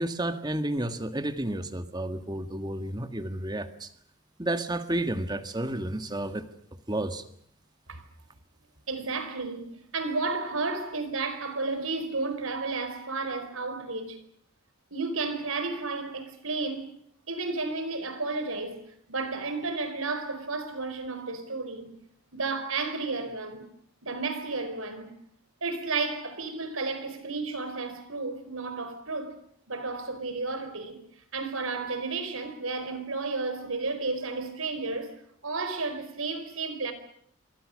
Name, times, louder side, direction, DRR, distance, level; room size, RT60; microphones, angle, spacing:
voice 1, 0.0-3.9 4.4-6.4 6.9-7.3, right 1 dB, 20° right, 1.7 m, -31 dB
voice 2, 8.9-14.2 14.9-16.9 17.3-18.8 19.1-21.9 22.3-23.7 24.0-25.1 25.6-29.4 29.7-31.0 31.3-35.1 35.4-36.9, right 3 dB, 85° right, 4.6 m, -32 dB
27.5 x 24.0 x 6.5 m
head